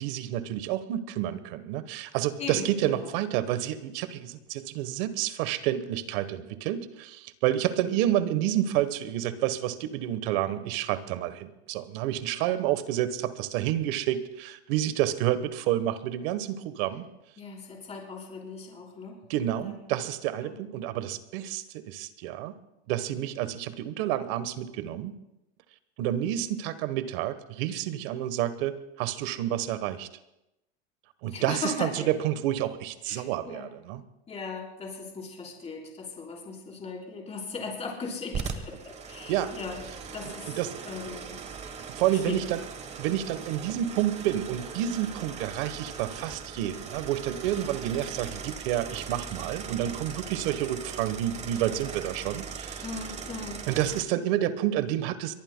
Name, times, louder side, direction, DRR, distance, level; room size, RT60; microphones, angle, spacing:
voice 1, 0.0-17.0 19.3-22.5 22.9-25.1 26.0-30.1 31.2-34.0 39.3-39.5 40.3-40.7 41.9-42.6 43.0-52.8 53.7-55.3, right 12 dB, 55° right, 13 dB, 1.2 m, -29 dB
voice 2, 2.4-3.1 17.4-19.2 19.6-19.8 20.4-20.5 31.3-32.1 33.1-33.7 34.3-39.8 40.1-40.5 40.9-41.4 42.2-42.4 52.8-53.6, left 4 dB, 20° left, -1 dB, 4.1 m, -38 dB
sound 1, 38.3-54.0, right 6 dB, 20° right, 1.2 m, -39 dB
23.5 x 22.5 x 2.2 m, 0.89 s
supercardioid pair, 145°, 33 cm